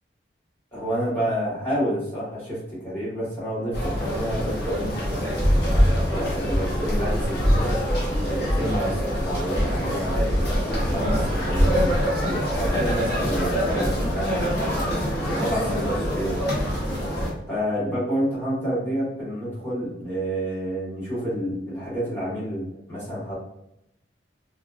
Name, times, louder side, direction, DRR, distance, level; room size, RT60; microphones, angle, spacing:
voice 1, 0.7-7.6 8.3-11.9 12.2-16.6 17.5-23.3, equal, 10° left, -9 dB, 1.3 m, -29 dB
sound 1, 3.7-17.3, equal, 65° left, 0.9 m, -24 dB
2.6 x 2.2 x 2.4 m, 0.80 s
head